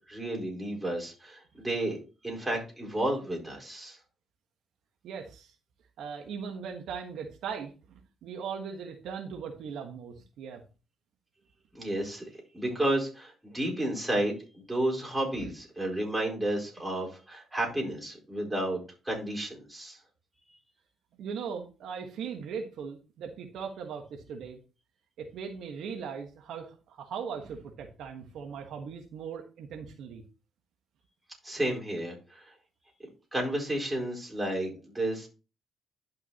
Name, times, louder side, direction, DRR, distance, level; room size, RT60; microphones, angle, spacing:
voice 1, 0.1-2.0 2.2-4.0 11.7-12.2 12.5-20.0 31.4-32.5 33.3-35.3, right 1 dB, 10° right, -1 dB, 4.5 m, -32 dB
voice 2, 5.0-5.5 6.0-10.6 15.4-15.5 21.2-24.6 25.2-30.2, right 6 dB, 75° right, 3 dB, 1.4 m, -39 dB
11.5 x 5.8 x 2.9 m, 0.32 s
cardioid pair, 90°, 0 cm